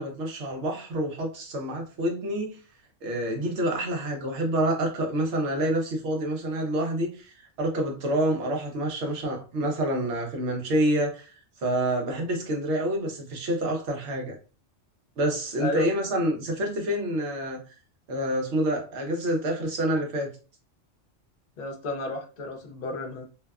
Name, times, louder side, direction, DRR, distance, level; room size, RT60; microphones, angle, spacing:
voice 1, 0.0-2.6 3.0-14.4 15.2-17.6 18.1-20.3, right 1 dB, 65° right, 1.0 m, -27 dB
voice 2, 21.6-23.2, left 2 dB, 55° left, 0.6 m, -32 dB
2.7 x 2.1 x 2.3 m
omnidirectional pair, 1.3 m